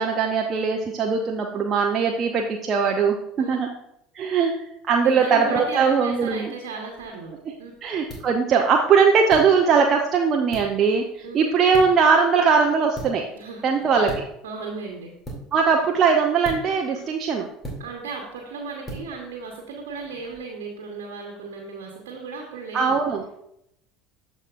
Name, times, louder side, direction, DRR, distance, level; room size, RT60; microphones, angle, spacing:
voice 1, 0.0-3.7 4.1-4.5 4.9-6.5 7.8-13.3 13.6-14.2 15.5-17.5 22.7-23.3, right 5 dB, 40° right, 2 dB, 0.7 m, -20 dB
voice 2, 5.0-7.3 7.6-7.7 11.2-11.4 13.3-14.1 14.4-15.1 17.8-23.0, right 4 dB, 65° right, 1 dB, 1.2 m, -35 dB
sound 1, 6.9-20.4, right 1 dB, 20° left, 2.6 m, -42 dB
13.0 x 4.8 x 2.5 m, 0.77 s
figure-of-eight pair, 70°, 0 cm